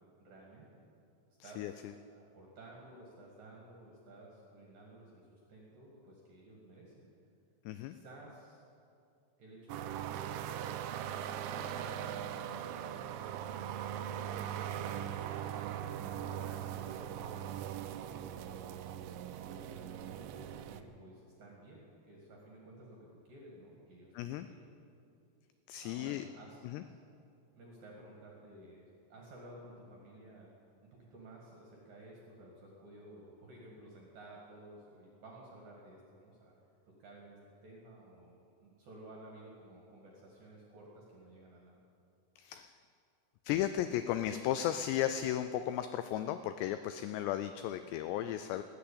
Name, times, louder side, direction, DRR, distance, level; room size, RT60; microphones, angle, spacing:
voice 1, 0.2-0.8 1.4-1.9 2.1-7.1 7.8-8.6 9.4-10.8 11.5-13.1 16.0-18.7 19.4-24.7 25.8-27.0 27.5-28.8 29.1-30.5 30.9-36.5 37.0-41.8, right 1 dB, 55° right, -3 dB, 3.2 m, -54 dB
voice 2, 7.7-8.0 24.2-24.5 25.7-26.2 26.6-26.8 42.4-42.7 43.5-48.6, left 11 dB, 90° left, 10 dB, 2.4 m, -35 dB
sound 1, 9.7-20.8, right 10 dB, 80° right, 2.9 m, -40 dB
19.5 x 8.0 x 8.6 m, 2.5 s
omnidirectional pair, 5.4 m